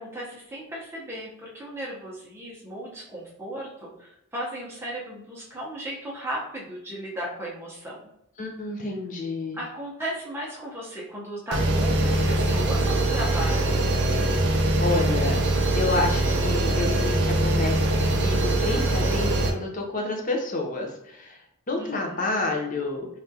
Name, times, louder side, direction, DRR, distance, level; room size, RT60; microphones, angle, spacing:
voice 1, 0.0-8.0 9.5-13.9 21.8-22.2, right 1 dB, 10° right, -5 dB, 0.8 m, -35 dB
voice 2, 8.4-9.6 14.5-15.4 15.7-23.1, left 2 dB, 40° left, 1 dB, 0.5 m, -29 dB
sound 1, 11.5-19.5, right 1 dB, 55° right, 0.4 m, -23 dB
3.4 x 2.4 x 2.7 m, 0.79 s
head